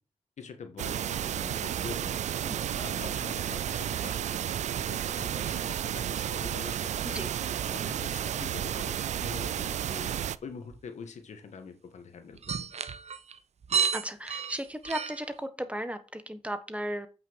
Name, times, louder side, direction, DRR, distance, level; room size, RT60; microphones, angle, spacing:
voice 1, 0.4-2.2 2.7-7.2 7.7-10.1 10.4-12.4 12.7-12.8, left 5 dB, 85° left, 7 dB, 1.6 m, -45 dB
sound 1, 0.8-10.4, right 10 dB, 85° right, 0.4 m, -32 dB
sound 2, 10.7-10.8 12.3-15.3, right 6 dB, 65° right, 0.8 m, -31 dB
voice 2, 13.9-17.1, right 1 dB, 10° right, 10 dB, 1.4 m, -35 dB
8.4 x 5.8 x 4.6 m, 0.33 s
cardioid pair, 55°, 12 cm